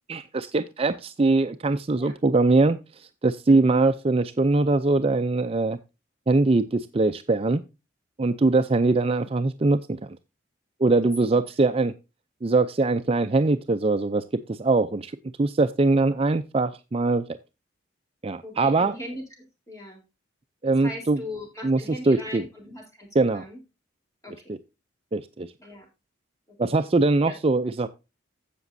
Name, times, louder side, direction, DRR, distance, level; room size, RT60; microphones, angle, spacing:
voice 1, 0.1-5.8 6.3-7.6 8.2-10.2 10.8-11.9 12.4-15.1 15.4-17.2 18.2-18.9 20.6-21.2 21.6-21.8 22.1-22.4 23.1-23.4 24.5-24.6 25.1-25.5 26.6-27.9, right 3 dB, 30° right, 9 dB, 0.4 m, -22 dB
voice 2, 3.5-3.8 8.3-8.5 11.2-11.4 18.4-19.2 19.7-20.0 20.7-23.6 24.2-24.5 25.6-25.9 27.2-27.4, left 1 dB, 15° left, 1 dB, 3.8 m, -39 dB
15.5 x 6.0 x 2.6 m, 0.27 s
head